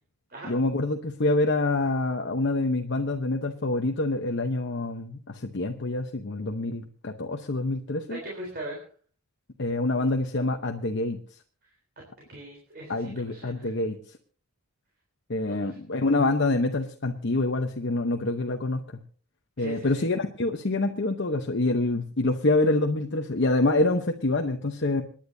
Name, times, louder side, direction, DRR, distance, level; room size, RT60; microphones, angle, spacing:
voice 1, 0.5-8.2 9.6-11.2 12.9-14.0 15.3-18.8 19.6-25.0, left 2 dB, 50° left, 3 dB, 0.9 m, -26 dB
voice 2, 8.1-8.8 12.3-13.7 15.5-15.8 19.6-20.1, right 1 dB, 45° right, -1 dB, 3.7 m, -40 dB
27.0 x 10.0 x 2.7 m, 0.43 s
head